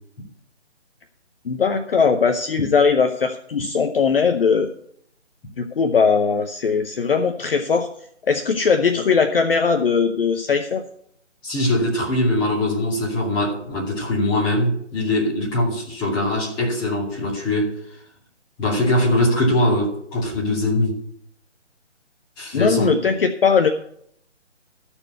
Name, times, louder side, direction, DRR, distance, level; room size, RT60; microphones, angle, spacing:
voice 1, 1.4-4.7 5.6-7.9 8.3-10.8 22.5-23.7, left 5 dB, 50° left, 0.9 m, -19 dB
voice 2, 11.4-17.7 18.6-21.0 22.4-22.9, left 1 dB, 10° left, 2.5 m, -21 dB
13.5 x 4.5 x 8.0 m
figure-of-eight pair, 155°, 36 cm